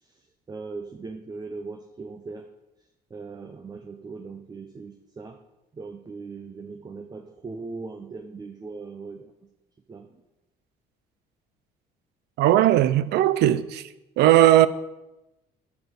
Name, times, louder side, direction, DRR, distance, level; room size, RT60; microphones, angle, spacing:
voice 1, 0.0-2.5 3.1-5.4 5.7-9.3 9.9-10.2, right 4 dB, 25° right, 0.8 m, -39 dB
voice 2, 12.4-13.8 14.2-14.7, right 13 dB, 80° right, 0.6 m, -18 dB
8.8 x 7.2 x 6.5 m
cardioid pair, 110°, 17 cm